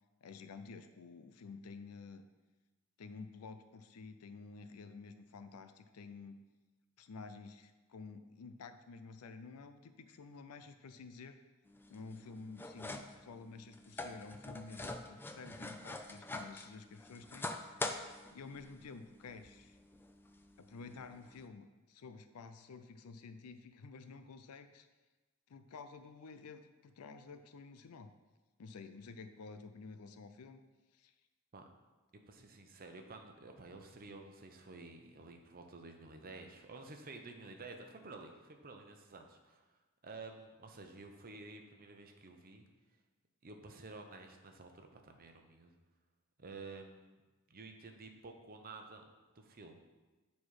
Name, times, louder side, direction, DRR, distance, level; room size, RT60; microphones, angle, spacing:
voice 1, 0.2-2.3 3.0-6.4 7.0-11.4 11.9-17.8 18.3-19.8 20.6-24.9 25.5-28.1 28.6-30.6 30.9-31.1, left 4 dB, 80° left, 10 dB, 0.5 m, -51 dB
sound 1, 11.7-21.5, left 2 dB, 10° left, 0.3 m, -46 dB
voice 2, 32.3-39.6 40.0-42.6 43.4-45.7 46.4-47.2 47.5-49.0 49.3-49.8, right 3 dB, 40° right, 4 dB, 0.8 m, -51 dB
9.1 x 4.2 x 4.8 m, 1.2 s
head